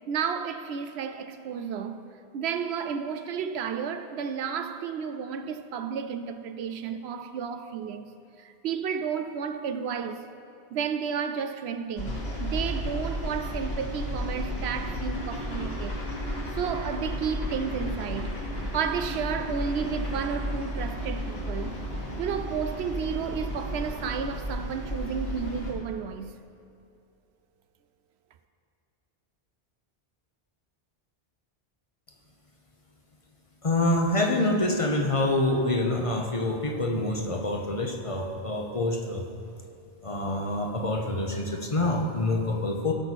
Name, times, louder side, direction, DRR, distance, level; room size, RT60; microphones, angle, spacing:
voice 1, 0.1-2.0 2.3-8.1 8.4-10.2 10.7-16.0 16.5-18.4 18.7-21.8 22.2-26.3, right 7 dB, 75° right, 0.8 m, -32 dB
sound 1, 12.0-25.7, equal, 70° left, 1.9 m, -33 dB
voice 2, 33.6-39.2 40.0-42.9, left 2 dB, 35° left, 0.8 m, -26 dB
17.0 x 6.1 x 4.1 m
omnidirectional pair, 1.1 m